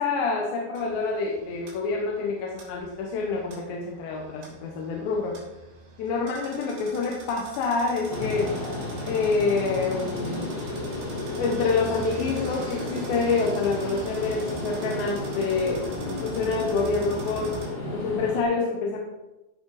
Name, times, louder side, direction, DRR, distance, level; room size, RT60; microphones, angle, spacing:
voice 1, 0.0-5.4 6.0-8.5 9.1-10.7 11.4-15.9 16.2-17.6 17.9-19.0, left 4 dB, 80° left, -1 dB, 3.5 m, -27 dB
sound 1, 0.8-17.7, right 3 dB, 90° right, 5.6 m, -44 dB
sound 2, 8.1-18.4, left 2 dB, 40° left, 2.0 m, -33 dB
15.0 x 6.3 x 4.9 m, 1.0 s
omnidirectional pair, 5.0 m